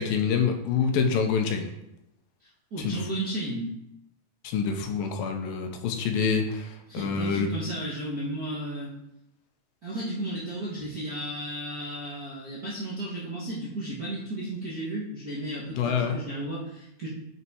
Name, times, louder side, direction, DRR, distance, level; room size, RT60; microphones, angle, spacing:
voice 1, 0.0-1.7 2.8-3.0 4.4-7.5 15.7-16.2, left 6 dB, 85° left, 4 dB, 2.6 m, -26 dB
voice 2, 2.4-3.7 6.9-8.9 9.8-17.1, right 1 dB, 50° right, -9 dB, 1.1 m, -34 dB
6.7 x 5.9 x 4.7 m, 0.84 s
omnidirectional pair, 4.0 m